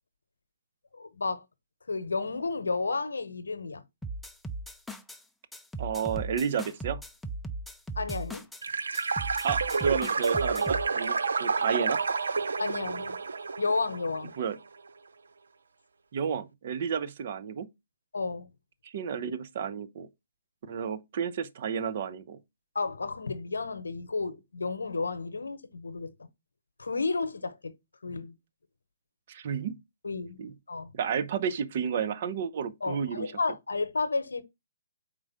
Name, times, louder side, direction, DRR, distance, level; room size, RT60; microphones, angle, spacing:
voice 1, 0.9-1.4 1.9-3.8 8.0-8.4 12.6-13.2 13.6-14.3 18.1-18.5 22.7-26.3 26.8-27.7 28.0-28.3 30.0-30.9 32.8-34.4, left 3 dB, 85° left, 0.8 m, -32 dB
sound 1, 4.0-5.2 5.5-8.6 8.9-10.9, right 2 dB, ahead, 0.5 m, -38 dB
voice 2, 5.8-7.0 9.4-12.0 14.4-14.6 16.1-17.7 18.8-20.1 20.7-22.4 29.3-29.8 30.4-30.5 30.9-33.3, right 7 dB, 50° right, 0.7 m, -31 dB
sound 2, 8.6-14.4, right 4 dB, 80° right, 0.5 m, -29 dB
4.6 x 3.7 x 5.5 m
hypercardioid pair, 140°, 0 cm